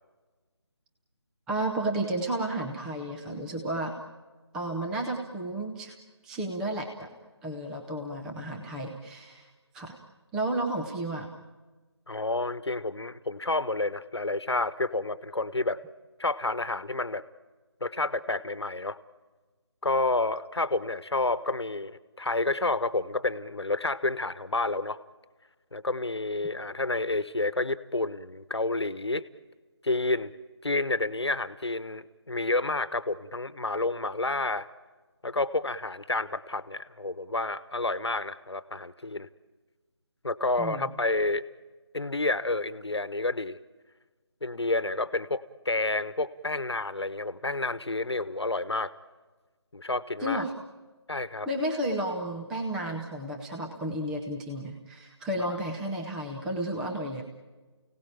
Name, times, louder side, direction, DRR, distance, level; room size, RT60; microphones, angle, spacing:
voice 1, 1.5-4.0 4.5-5.9 6.2-7.1 7.4-9.5 9.7-10.0 10.3-11.3 40.6-40.9 50.2-50.5 51.5-57.2, right 1 dB, 5° right, 0 dB, 0.8 m, -32 dB
voice 2, 12.1-15.8 16.2-17.2 17.8-19.0 19.8-25.0 25.7-29.2 29.8-30.3 30.6-34.7 35.2-39.3 40.2-41.5 41.9-43.6 44.4-48.9 49.7-50.4 51.1-51.5, left 2 dB, 65° left, 15 dB, 1.2 m, -29 dB
29.5 x 17.5 x 8.9 m, 1.3 s
figure-of-eight pair, 155°, 15 cm